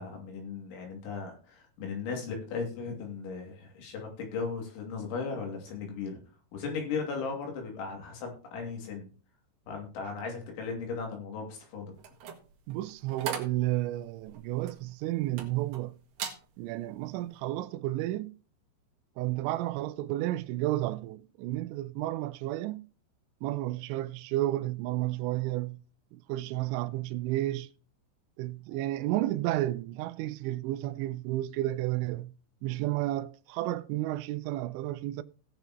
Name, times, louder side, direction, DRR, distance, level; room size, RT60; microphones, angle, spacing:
voice 1, 0.0-6.2 6.5-9.1 9.7-11.9, left 5 dB, 85° left, 4.9 m, -37 dB
sound 1, 12.0-15.8 16.1-16.4 16.9-17.2, right 7 dB, 60° right, 2.8 m, -40 dB
voice 2, 12.7-16.0 16.6-18.3 19.2-22.8 23.4-25.8 26.1-27.7 28.4-32.3 32.6-35.2, right 16 dB, 85° right, 2.9 m, -32 dB
18.5 x 6.9 x 3.0 m
omnidirectional pair, 5.3 m